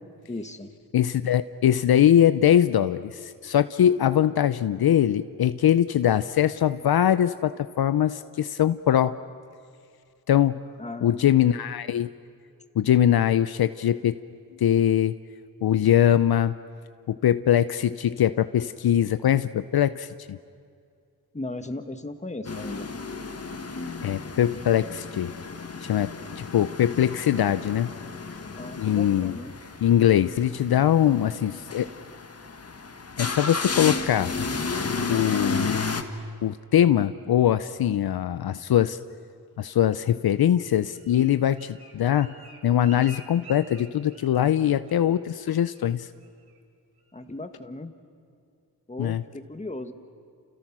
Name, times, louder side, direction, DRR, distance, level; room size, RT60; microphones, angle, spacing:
voice 1, 0.3-0.7 10.8-11.4 21.3-22.9 28.5-29.6 47.1-47.9 48.9-49.9, left 2 dB, 15° left, 7 dB, 1.8 m, -36 dB
voice 2, 0.9-9.2 10.3-10.6 11.0-12.1 12.8-14.1 14.6-15.1 15.6-16.5 17.1-20.4 24.0-25.4 25.8-27.9 28.8-29.3 29.8-31.9 33.2-34.3 35.1-35.8 36.4-39.0 39.6-42.3 42.6-46.1 49.0-49.2, left 10 dB, 70° left, 13 dB, 0.7 m, -22 dB
sound 1, 22.4-36.0, left 4 dB, 40° left, 1.7 m, -33 dB
Bird, 40.5-44.6 44.9-45.2 45.5-45.9 46.2-46.6 47.0-47.1, right 1 dB, 65° right, 3.5 m, -49 dB
30.0 x 29.5 x 6.2 m, 2.3 s
cardioid pair, 85°, 39 cm